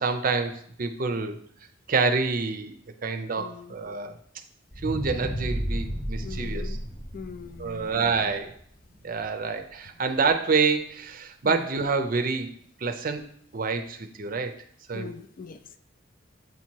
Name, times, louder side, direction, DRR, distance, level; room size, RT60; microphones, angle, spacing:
voice 1, 0.0-1.4 1.9-2.7 3.0-4.2 4.8-6.8 7.6-8.5 9.0-12.5 12.8-13.2 13.5-14.5 14.9-15.1, right 4 dB, 45° right, 0.6 m, -27 dB
voice 2, 3.4-3.8 6.2-6.8 7.1-8.3 11.4-11.7 14.9-15.8, left 5 dB, 45° left, 0.4 m, -41 dB
sound 1, 4.7-9.0 9.5-9.6, equal, 25° left, 0.8 m, -32 dB
7.8 x 2.9 x 4.6 m
head